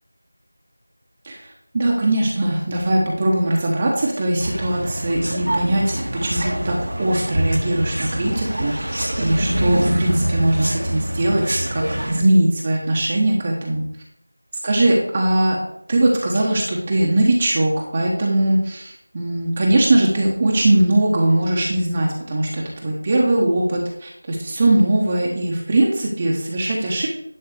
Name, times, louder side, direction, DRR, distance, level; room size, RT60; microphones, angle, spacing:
voice 1, 1.7-13.8 14.6-15.6 15.9-27.1, right 1 dB, 25° right, -2 dB, 1.1 m, -20 dB
sound 1, 4.4-12.2, equal, 70° right, 1.7 m, -24 dB
11.0 x 3.8 x 6.8 m, 0.75 s
figure-of-eight pair, 170°, 0 cm